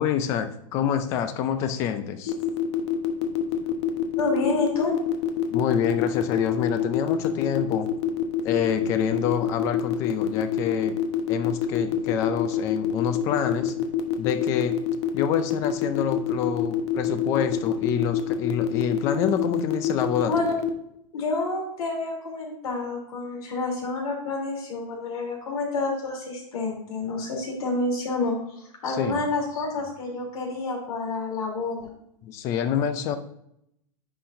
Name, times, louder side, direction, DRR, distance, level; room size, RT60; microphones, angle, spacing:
voice 1, 0.0-2.3 5.5-7.9 8.4-11.0 11.3-13.8 14.2-14.7 15.1-20.3 28.9-29.2 32.2-33.2, left 9 dB, 15° left, 10 dB, 0.3 m, -27 dB
sound 1, 2.3-20.7, left 11 dB, 50° left, 0.9 m, -25 dB
voice 2, 4.2-4.9 20.3-20.6 21.1-31.9, left 3 dB, 80° left, 0 dB, 3.1 m, -29 dB
10.0 x 5.7 x 2.6 m, 0.76 s
supercardioid pair, 175°, 18 cm